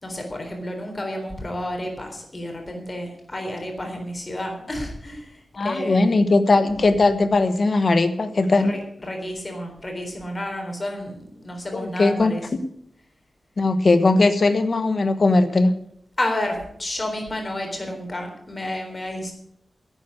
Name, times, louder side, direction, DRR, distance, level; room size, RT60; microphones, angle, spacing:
voice 1, 0.0-6.2 8.6-12.4 16.2-19.3, left 1 dB, 30° left, 3 dB, 3.8 m, -31 dB
voice 2, 5.6-8.8 11.7-12.6 13.6-15.7, left 3 dB, 45° left, 10 dB, 1.3 m, -19 dB
11.0 x 8.9 x 8.3 m, 0.72 s
wide cardioid pair, 125°, 0 cm